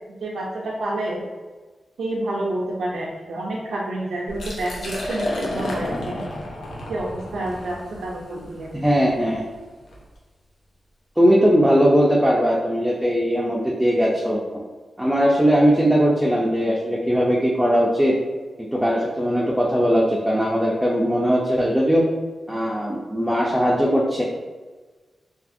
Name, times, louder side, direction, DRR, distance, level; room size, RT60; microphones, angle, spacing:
voice 1, 0.2-1.2 2.0-6.2 6.9-8.7, right 1 dB, 90° right, -4 dB, 0.4 m, -28 dB
Liquid, 4.3-10.0, left 1 dB, 80° left, 0.6 m, -32 dB
voice 2, 8.7-9.4 11.2-14.4 15.0-18.1 18.6-22.0 22.5-24.2, equal, 5° right, -4 dB, 0.4 m, -19 dB
2.7 x 2.4 x 2.5 m, 1.3 s
wide cardioid pair, 95°, 0 cm